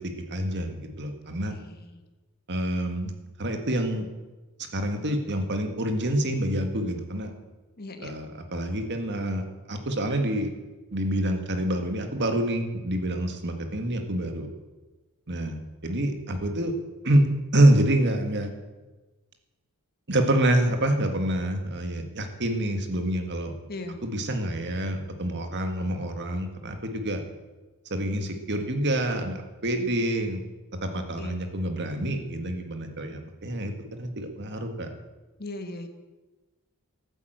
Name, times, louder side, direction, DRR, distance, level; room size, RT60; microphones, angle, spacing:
voice 1, 0.0-1.5 2.5-3.1 3.4-4.1 4.7-7.3 8.0-10.5 10.9-14.5 15.3-16.7 17.0-18.5 20.1-23.5 24.0-27.2 27.9-30.4 30.8-34.9, right 1 dB, 55° right, 6 dB, 1.8 m, -27 dB
voice 2, 1.3-2.0 7.8-8.1 23.7-24.0 30.9-31.7 35.4-35.9, left 2 dB, 45° left, 7 dB, 1.6 m, -40 dB
13.5 x 9.2 x 8.0 m, 1.2 s
head